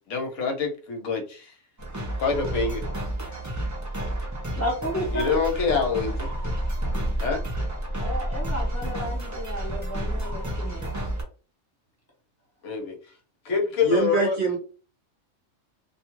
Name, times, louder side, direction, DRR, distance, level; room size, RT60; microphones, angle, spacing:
voice 1, 0.1-1.5 2.2-2.8 5.1-6.3 7.2-7.4 12.6-13.0 13.4-14.4, left 5 dB, 65° left, 2 dB, 1.1 m, -26 dB
sound 1, 1.8-11.2, right 1 dB, 25° right, 0.3 m, -30 dB
voice 2, 4.5-5.4 8.0-10.9, equal, 15° left, -3 dB, 0.9 m, -32 dB
voice 3, 13.8-14.6, right 3 dB, 45° right, 0 dB, 0.8 m, -24 dB
2.5 x 2.3 x 3.0 m, 0.38 s
omnidirectional pair, 1.4 m